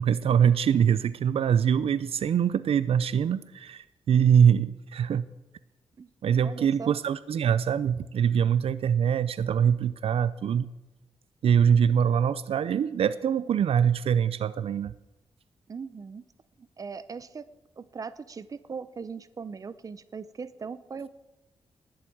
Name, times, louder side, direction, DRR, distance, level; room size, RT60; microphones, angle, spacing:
voice 1, 0.0-5.3 6.2-10.7 11.4-14.9, right 8 dB, 70° right, 16 dB, 0.5 m, -23 dB
voice 2, 6.4-7.0 15.7-16.2 16.6-17.5 17.8-21.1, right 5 dB, 35° right, 15 dB, 0.7 m, -39 dB
20.0 x 7.9 x 8.6 m, 1.0 s
wide cardioid pair, 155°, 10 cm